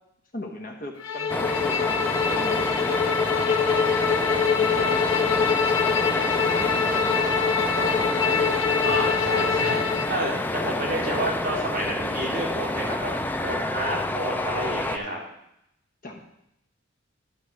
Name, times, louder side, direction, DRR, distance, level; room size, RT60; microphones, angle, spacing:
voice 1, 0.3-3.0 3.3-5.5 5.8-8.2 16.0-16.2, left 1 dB, 45° left, 3 dB, 1.1 m, -38 dB
Bowed string instrument, 1.0-10.1, left 6 dB, 70° left, 0.9 m, -24 dB
sound 1, 1.3-15.0, left 1 dB, 10° left, 0.3 m, -28 dB
voice 2, 8.8-9.8 10.1-13.1 13.4-15.2, right 1 dB, 45° right, -3 dB, 2.6 m, -30 dB
11.5 x 4.1 x 6.3 m, 0.79 s
head